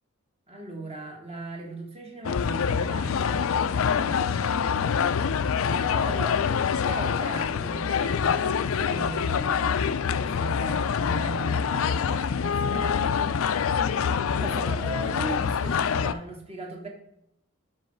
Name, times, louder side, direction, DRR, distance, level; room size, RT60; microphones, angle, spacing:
voice 1, 0.5-5.1 5.6-6.4 6.8-13.6 14.3-16.9, right 3 dB, 30° right, 0 dB, 1.7 m, -39 dB
sound 1, 2.2-16.1, left 6 dB, 75° left, 0.4 m, -25 dB
6.4 x 5.3 x 4.4 m, 0.79 s
head